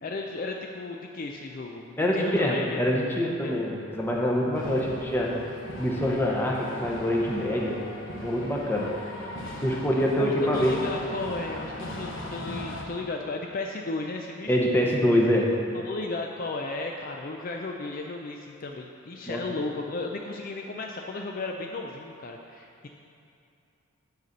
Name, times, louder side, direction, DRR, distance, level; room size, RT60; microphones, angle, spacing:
voice 1, 0.0-2.8 3.4-3.6 9.2-9.4 10.2-14.6 15.7-22.9, left 3 dB, 40° left, 2 dB, 0.4 m, -34 dB
voice 2, 2.0-5.4 5.8-7.8 8.2-9.0 9.6-10.8 14.5-15.5 19.3-19.5, equal, 10° left, -2 dB, 0.9 m, -25 dB
sound 1, 4.5-12.8, left 1 dB, 60° left, 1.2 m, -39 dB
9.4 x 4.1 x 6.5 m, 2.6 s
head